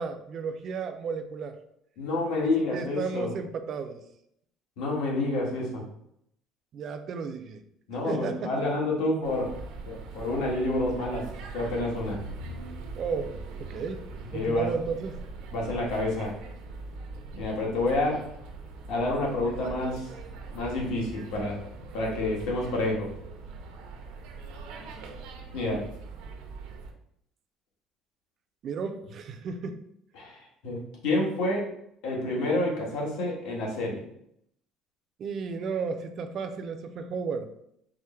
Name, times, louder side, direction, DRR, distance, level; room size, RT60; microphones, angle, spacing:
voice 1, 0.0-1.6 2.4-4.0 6.7-7.6 8.0-8.5 12.9-13.3 13.6-14.0 14.3-15.2 28.6-29.8 35.2-37.5, right 5 dB, 35° right, 7 dB, 0.4 m, -33 dB
voice 2, 2.0-3.3 4.8-5.8 7.9-9.5 9.8-12.2 14.3-14.7 15.5-16.4 17.4-18.2 18.9-20.1 20.5-21.6 21.9-23.1 25.5-25.9 30.1-31.7 32.0-34.0, left 2 dB, 70° left, -3 dB, 1.5 m, -28 dB
sound 1, 9.2-26.9, right 3 dB, 85° right, 0.7 m, -42 dB
4.7 x 2.1 x 4.3 m, 0.73 s
cardioid pair, 180°, 0 cm